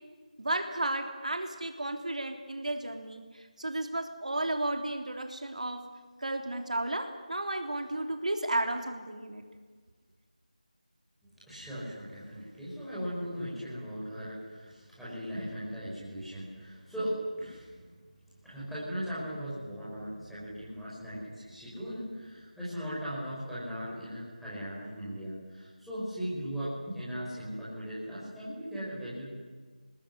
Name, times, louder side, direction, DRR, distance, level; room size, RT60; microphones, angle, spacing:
voice 1, 0.4-5.8 6.2-9.4, right 1 dB, 60° right, 4 dB, 3.4 m, -33 dB
voice 2, 11.2-17.8 18.4-29.3, equal, ahead, -12 dB, 6.3 m, -38 dB
28.5 x 20.0 x 9.9 m, 1.5 s
figure-of-eight pair, 170°, 4 cm